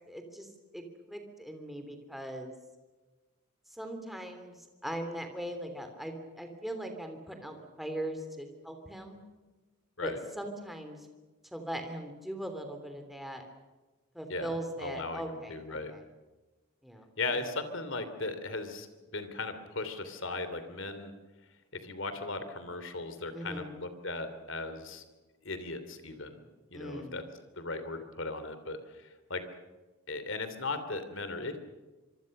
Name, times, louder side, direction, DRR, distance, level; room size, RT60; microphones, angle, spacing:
voice 1, 0.1-2.5 3.7-9.2 10.0-11.1 11.5-13.4 14.1-16.0 16.8-17.4 23.3-23.7 26.7-27.1, right 1 dB, ahead, 5 dB, 3.1 m, -40 dB
voice 2, 14.3-15.9 17.2-18.9 19.1-21.1 21.8-25.0 25.4-26.4 26.7-27.2 27.6-29.4 30.1-31.6, left 3 dB, 60° left, 10 dB, 3.1 m, -37 dB
26.0 x 24.0 x 6.7 m, 1.2 s
head